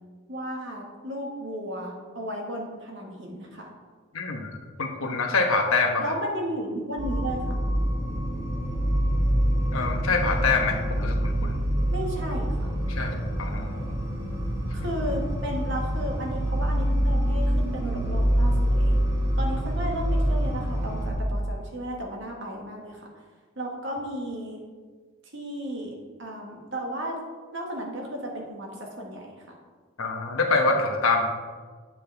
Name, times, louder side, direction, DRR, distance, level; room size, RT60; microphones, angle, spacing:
voice 1, 0.3-3.7 6.0-7.6 11.9-12.7 14.7-19.0 19.4-23.1 23.5-24.6 25.3-25.9 26.2-27.1 27.5-29.3, equal, 60° right, 0 dB, 1.6 m, -34 dB
voice 2, 4.1-6.1 9.7-11.6 12.9-14.0 30.0-31.2, left 3 dB, 90° left, 2 dB, 1.1 m, -26 dB
sound 1, 7.0-21.1, equal, 20° right, 1.5 m, -26 dB
8.6 x 7.6 x 3.4 m, 1.5 s
head